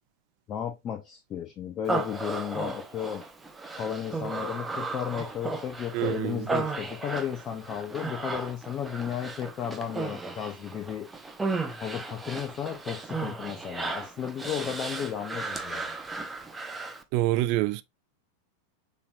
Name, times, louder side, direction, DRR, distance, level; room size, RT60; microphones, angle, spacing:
voice 1, 0.5-3.2 3.7-11.1 11.8-16.0, left 9 dB, 30° left, 0.8 m, -34 dB
Human voice, 1.9-17.0, right 3 dB, 10° right, 0.7 m, -35 dB
voice 2, 5.9-6.3 17.1-17.8, right 15 dB, 45° right, 0.4 m, -25 dB
6.8 x 3.1 x 2.4 m
figure-of-eight pair, 90°, 0 cm